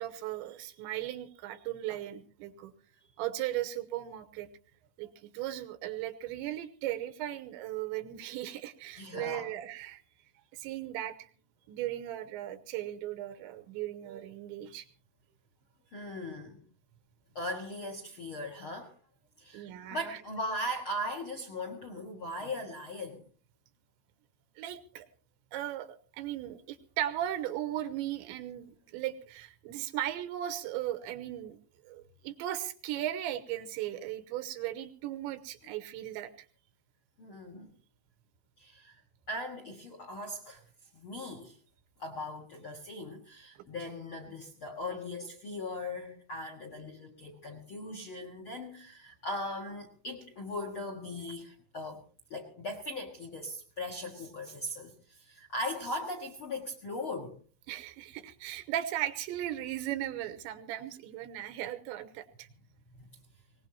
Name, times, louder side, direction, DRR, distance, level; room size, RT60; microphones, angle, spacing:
voice 1, 0.0-2.7 3.2-4.5 5.0-10.0 10.5-11.3 11.7-14.9 19.5-20.2 24.6-25.1 25.5-31.6 31.8-36.3 57.7-62.5, right 13 dB, 90° right, 9 dB, 3.3 m, -37 dB
voice 2, 9.0-9.5 15.9-16.6 17.3-18.9 19.4-23.2 37.2-37.7 38.6-39.0 39.3-40.6 40.9-41.6 42.0-52.0 52.3-57.3, left 1 dB, 55° left, 4 dB, 1.4 m, -39 dB
21.5 x 19.0 x 2.9 m, 0.40 s
omnidirectional pair, 5.2 m